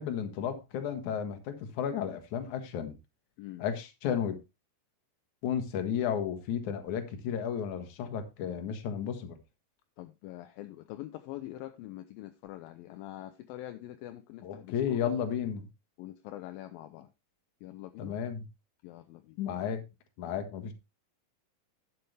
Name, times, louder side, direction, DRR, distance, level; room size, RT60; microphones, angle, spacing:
voice 1, 0.0-3.0 3.6-4.4 5.4-9.4 14.4-15.7 18.0-18.5 19.4-19.8 20.2-20.7, left 8 dB, 60° left, 2.3 m, -33 dB
voice 2, 10.0-15.1 16.0-17.1 17.6-18.2 18.8-19.4, left 14 dB, 80° left, 2.1 m, -44 dB
11.5 x 7.9 x 3.3 m
omnidirectional pair, 4.8 m